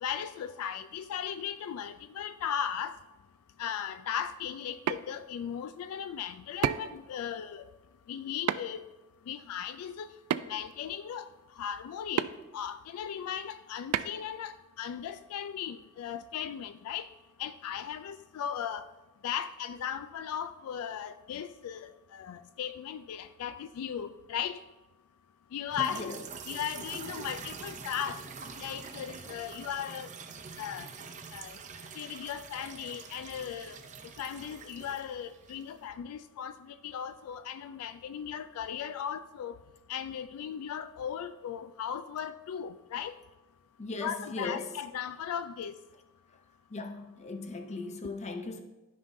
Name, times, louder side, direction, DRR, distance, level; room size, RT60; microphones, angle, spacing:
voice 1, 0.0-3.0 3.6-7.6 8.1-8.8 9.3-10.1 10.5-11.3 11.6-12.3 12.5-17.1 17.4-18.9 19.2-24.6 25.5-26.2 26.5-28.2 28.6-30.1 30.6-30.9 31.3-31.6 32.0-33.8 34.2-39.6 39.9-43.2 44.0-45.7, left 8 dB, 70° left, 0.3 m, -37 dB
sound 1, 4.6-5.0 6.6-7.0 8.5-8.8 10.3-10.7 12.2-12.3 13.9-14.2, right 8 dB, 80° right, 0.3 m, -30 dB
sound 2, 25.7-35.9, right 5 dB, 35° right, 0.6 m, -45 dB
voice 2, 43.8-44.7 46.7-48.6, left 3 dB, 30° left, 0.6 m, -38 dB
12.5 x 5.5 x 2.6 m
head